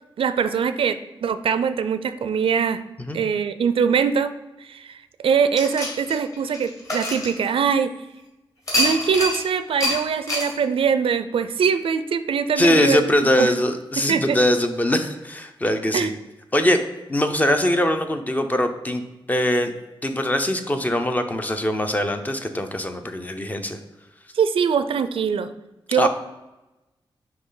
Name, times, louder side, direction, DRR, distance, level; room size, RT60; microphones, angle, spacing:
voice 1, 0.2-2.8 3.1-4.3 4.6-5.0 5.2-7.9 8.7-13.5 14.0-14.4 15.9-16.1 24.3-25.5 25.9-26.1, right 6 dB, 75° right, 11 dB, 0.4 m, -22 dB
sound 1, 5.5-7.9 8.7-9.4 9.8-10.0 10.3-10.5, left 1 dB, 35° left, 2.2 m, -25 dB
voice 2, 12.6-16.1 16.5-16.8 17.1-19.0 19.3-19.7 20.0-23.8 25.9-26.1, left 1 dB, 15° left, 7 dB, 0.5 m, -22 dB
9.6 x 3.3 x 3.8 m, 1.0 s
wide cardioid pair, 170°, 9 cm